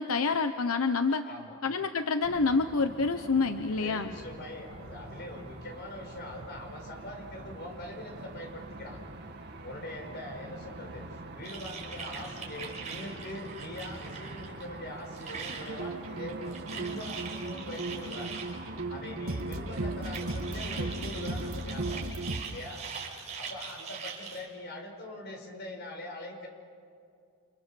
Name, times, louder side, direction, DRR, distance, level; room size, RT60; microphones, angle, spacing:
voice 1, 0.0-1.2 1.6-4.1, left 4 dB, 80° left, 8 dB, 0.9 m, -27 dB
voice 2, 1.2-1.6 3.8-9.0 9.6-18.4 18.9-22.1 22.4-22.9 23.4-26.5, left 1 dB, 50° left, 3 dB, 5.3 m, -43 dB
sound 1, 2.2-22.0, right 2 dB, 50° right, 2.3 m, -45 dB
sound 2, 11.4-14.7 14.9-15.8 16.2-18.6 19.5-24.5, right 6 dB, 35° right, 5.4 m, -42 dB
sound 3, 15.7-22.4, right 2 dB, 70° right, 1.7 m, -36 dB
30.0 x 27.5 x 7.0 m, 2.4 s
head